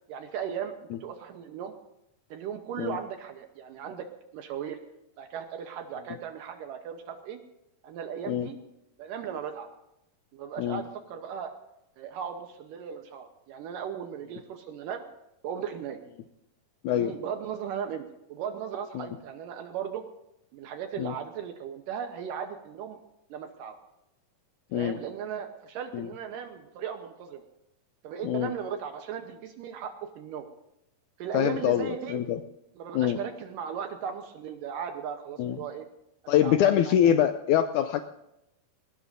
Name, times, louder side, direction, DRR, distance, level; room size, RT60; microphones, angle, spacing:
voice 1, 0.1-1.7 2.3-4.1 4.3-4.8 5.2-7.4 7.8-8.6 9.0-9.7 10.3-11.5 12.0-15.0 15.4-16.0 16.9-20.0 20.5-23.0 23.3-23.7 24.7-27.5 28.0-30.5 31.2-32.2 32.8-35.9 36.2-37.2, right 8 dB, 75° right, 6 dB, 2.4 m, -37 dB
voice 2, 31.3-32.4 32.9-33.2 35.4-35.6 36.3-38.0, left 10 dB, 85° left, 9 dB, 1.7 m, -25 dB
21.0 x 18.0 x 2.6 m, 0.88 s
omnidirectional pair, 4.2 m